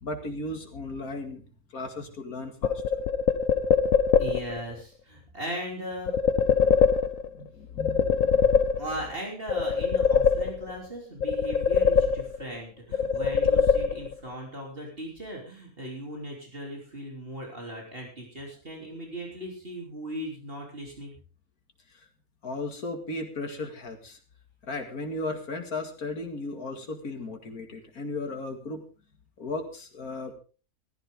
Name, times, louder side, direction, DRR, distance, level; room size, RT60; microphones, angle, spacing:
voice 1, 0.0-1.4 1.7-2.8 7.3-8.7 21.9-22.1 22.4-24.2 24.6-28.8 29.4-30.3, left 2 dB, 85° left, 5 dB, 2.6 m, -36 dB
sound 1, 2.6-4.6 6.1-7.4 7.8-9.1 9.5-10.9 11.2-12.6 12.9-14.3, left 6 dB, 70° left, 1.3 m, -23 dB
voice 2, 4.2-6.2 8.8-21.2, equal, 40° right, 0 dB, 3.5 m, -38 dB
15.0 x 14.5 x 3.7 m, 0.36 s
omnidirectional pair, 1.5 m